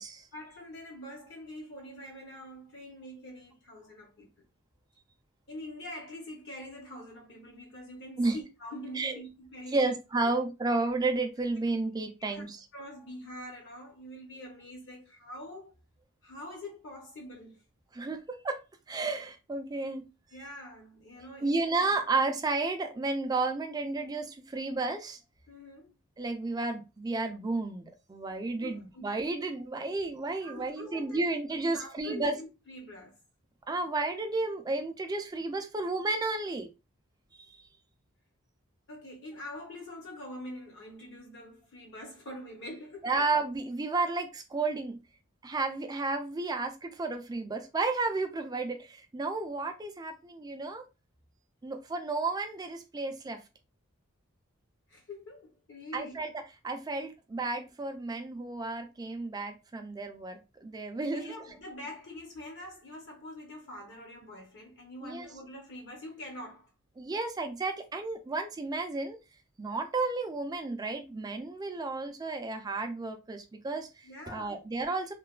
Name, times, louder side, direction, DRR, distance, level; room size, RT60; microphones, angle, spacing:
voice 1, 0.3-4.3 5.5-9.9 10.2-10.3 12.3-12.5 12.7-15.8 16.2-17.6 20.3-21.7 25.5-25.9 28.6-29.1 30.4-31.2 31.7-33.2 38.9-43.2 54.9-56.2 61.1-66.7 74.0-74.6, left 1 dB, 55° left, 0.8 m, -45 dB
voice 2, 9.7-12.6 17.9-18.6 18.9-20.1 21.4-25.2 26.2-32.3 33.7-36.7 37.3-37.6 43.0-45.0 45.4-50.8 51.6-53.4 55.9-61.3 65.0-65.3 67.0-69.2 69.6-75.1, right 3 dB, 20° right, 0.3 m, -32 dB
3.1 x 2.1 x 2.3 m
head